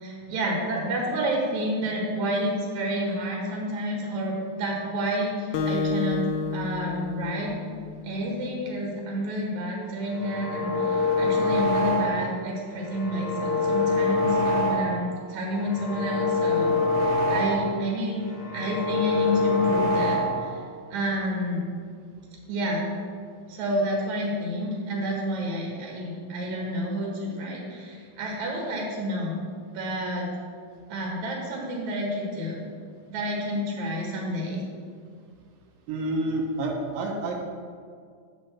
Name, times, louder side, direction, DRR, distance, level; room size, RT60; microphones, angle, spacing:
voice 1, 0.0-7.5 8.0-18.2 18.5-20.6 20.9-21.7 22.5-22.9 23.5-29.4 29.7-30.3 30.9-32.6 33.1-34.6, equal, 65° right, -2 dB, 2.8 m, -29 dB
Acoustic guitar, 5.5-8.3, left 4 dB, 80° left, 2.1 m, -30 dB
sound 1, 10.0-12.4 12.8-15.1 15.5-17.8 18.2-20.6, left 2 dB, 50° left, 1.5 m, -25 dB
voice 2, 35.9-37.4, right 2 dB, 85° right, 0 dB, 2.6 m, -28 dB
9.5 x 7.8 x 4.4 m, 2.1 s
omnidirectional pair, 3.9 m